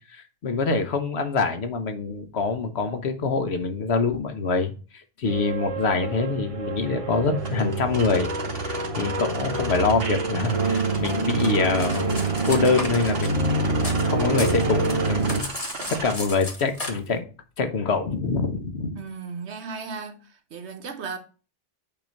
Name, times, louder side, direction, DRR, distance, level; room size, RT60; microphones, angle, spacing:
voice 1, 0.1-4.7 5.2-8.3 8.6-12.2 12.4-13.6 14.1-15.5 15.9-17.2 17.6-19.0, left 4 dB, 65° left, 1.2 m, -25 dB
sound 1, 5.3-15.4, right 3 dB, 30° right, 0.8 m, -26 dB
sound 2, 7.4-16.2, right 3 dB, 55° right, 1.4 m, -36 dB
Cutlery silverware, 10.8-14.1 14.3-16.9, left 2 dB, 30° left, 1.3 m, -35 dB
voice 2, 18.9-21.2, right 5 dB, 70° right, 1.2 m, -36 dB
8.8 x 3.0 x 5.2 m
omnidirectional pair, 1.2 m